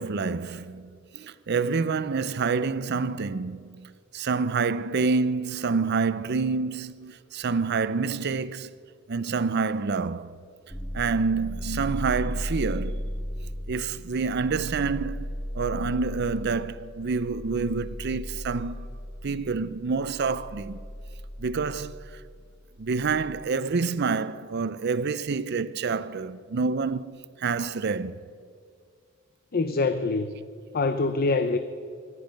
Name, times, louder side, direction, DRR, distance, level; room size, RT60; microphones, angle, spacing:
voice 1, 0.0-8.7 9.1-10.4 10.9-13.0 13.7-18.9 19.2-20.8 21.4-22.2 22.8-28.2 31.0-31.1, right 4 dB, 55° right, 0.5 m, -28 dB
sound 1, 10.7-23.4, equal, 10° left, 1.4 m, -36 dB
voice 2, 29.5-30.4 30.7-31.6, left 3 dB, 45° left, 0.6 m, -25 dB
24.5 x 11.0 x 5.2 m
head